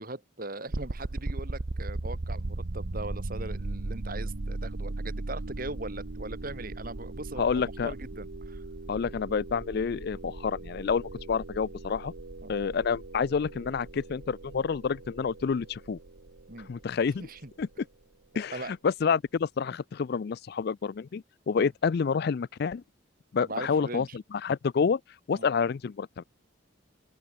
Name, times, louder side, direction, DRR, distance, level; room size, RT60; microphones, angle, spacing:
voice 1, 0.0-8.6 12.4-12.5 16.5-16.7 17.2-17.5 18.5-18.7 21.6-21.7 23.4-24.2 25.3-25.5, right 2 dB, 45° right, 2.4 m, -40 dB
sound 1, 0.7-17.6, right 2 dB, 70° right, 1.0 m, -38 dB
voice 2, 7.4-7.9 8.9-12.1 12.5-16.0 16.7-17.2 17.6-17.7 18.4-22.8 23.3-25.0 25.3-26.2, left 6 dB, 50° left, 0.3 m, -28 dB
open air
head